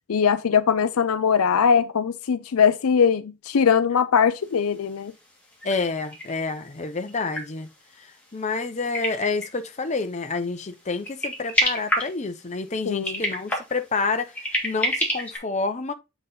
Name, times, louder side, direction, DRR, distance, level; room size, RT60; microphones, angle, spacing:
voice 1, 0.1-5.1 12.9-13.2, left 6 dB, 70° left, 0.4 m, -21 dB
sound 1, 4.6-4.7 4.9-5.0 5.4-9.9 10.4-10.7 11.0-12.6 12.9-15.4, left 1 dB, 5° left, 2.1 m, -28 dB
voice 2, 5.6-7.7 8.0-15.9, left 3 dB, 30° left, 0.7 m, -28 dB
7.5 x 4.0 x 3.9 m
head